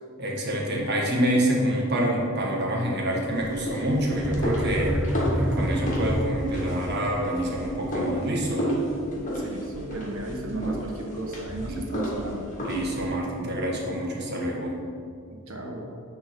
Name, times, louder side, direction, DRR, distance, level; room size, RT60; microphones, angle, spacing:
voice 1, 0.2-5.0 5.4-8.7 11.6-11.9 12.6-14.8, right 1 dB, 50° right, -2 dB, 1.4 m, -27 dB
sound 1, 3.3-13.1, equal, 35° left, 1.8 m, -32 dB
sound 2, 4.0-6.8, equal, 5° right, 0.4 m, -27 dB
voice 2, 9.1-12.4 15.5-15.9, right 2 dB, 75° right, 1 dB, 1.2 m, -34 dB
9.0 x 3.7 x 5.9 m, 2.4 s
head